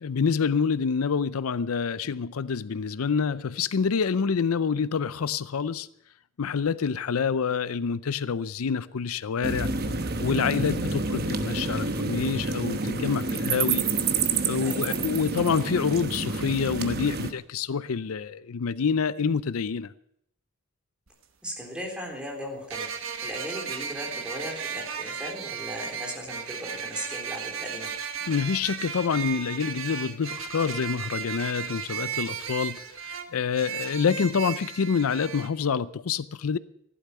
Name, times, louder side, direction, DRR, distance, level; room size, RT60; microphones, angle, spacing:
voice 1, 0.0-5.9 6.4-9.7 10.2-13.8 14.4-19.9 28.3-36.6, left 6 dB, 85° left, 0.5 m, -27 dB
sound 1, 9.4-17.3, right 4 dB, 45° right, 1.0 m, -28 dB
voice 2, 14.6-15.0 21.4-22.9 23.2-27.9, equal, 5° right, 3.7 m, -37 dB
sound 2, 21.1-21.2 22.7-35.5, right 7 dB, 75° right, 1.4 m, -35 dB
15.0 x 11.5 x 6.8 m
head